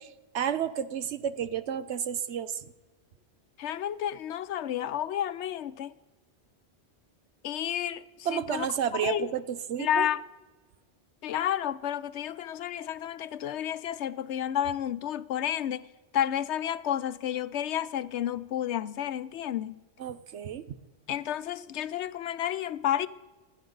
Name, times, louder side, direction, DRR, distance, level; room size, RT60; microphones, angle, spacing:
voice 1, 0.0-2.7 8.2-10.1 20.0-20.6, right 9 dB, 80° right, 1.1 m, -31 dB
voice 2, 3.6-5.9 7.4-8.7 9.0-9.3 9.8-10.2 11.2-15.9 16.1-19.8 21.1-23.1, left 10 dB, 80° left, 0.9 m, -31 dB
28.0 x 9.9 x 3.9 m
omnidirectional pair, 1.1 m